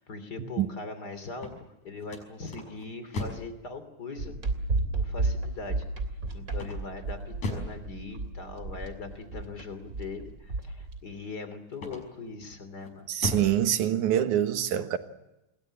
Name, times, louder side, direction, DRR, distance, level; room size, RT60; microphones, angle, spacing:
voice 1, 0.0-4.4 4.9-5.8 6.3-13.1, left 3 dB, 35° left, 3.3 m, -41 dB
sound 1, 1.3-3.6 6.5-7.8 11.7-12.3 12.8-13.6, left 2 dB, 70° left, 7.1 m, -36 dB
sound 2, 4.2-11.0, right 3 dB, 30° right, 3.2 m, -32 dB
voice 2, 13.1-15.0, right 11 dB, 80° right, 2.8 m, -25 dB
28.5 x 22.0 x 7.5 m
omnidirectional pair, 3.5 m